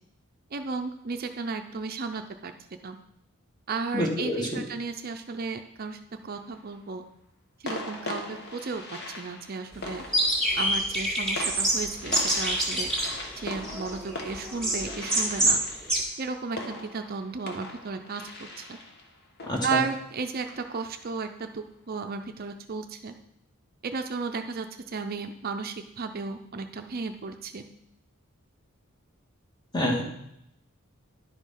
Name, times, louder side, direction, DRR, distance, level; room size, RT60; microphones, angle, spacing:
voice 1, 0.5-2.5 2.8-3.0 3.7-7.0 7.6-8.8 9.1-10.0 10.5-12.9 13.4-15.6 16.2-18.8 19.6-23.1 23.8-27.6, right 4 dB, 45° right, 6 dB, 0.5 m, -34 dB
voice 2, 3.9-4.6 19.5-19.8 29.7-30.0, left 1 dB, 20° left, -1 dB, 1.7 m, -27 dB
sound 1, 6.4-6.7 7.7-21.1, left 2 dB, 50° left, 1.3 m, -40 dB
sound 2, 10.1-15.6 15.9-16.0, right 1 dB, 5° left, 2.0 m, -26 dB
11.0 x 5.2 x 5.6 m, 0.78 s
head